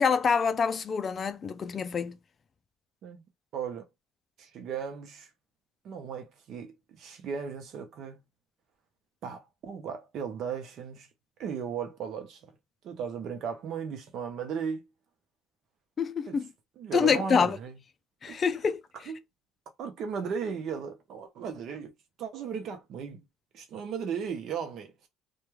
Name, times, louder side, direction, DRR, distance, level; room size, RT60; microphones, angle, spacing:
voice 1, 0.0-2.2 16.0-16.5 16.9-17.6 18.2-18.8, left 6 dB, 35° left, 0.3 m, -26 dB
voice 2, 3.5-3.9 4.4-5.3 5.8-8.2 9.2-11.1 11.4-12.4 12.8-14.9 16.3-16.4 16.8-17.8 18.3-18.4 19.1-19.2 19.8-21.9 22.2-23.2 23.5-25.1, right 7 dB, 60° right, 0.6 m, -36 dB
2.2 x 2.2 x 3.0 m
cardioid pair, 110°, 0 cm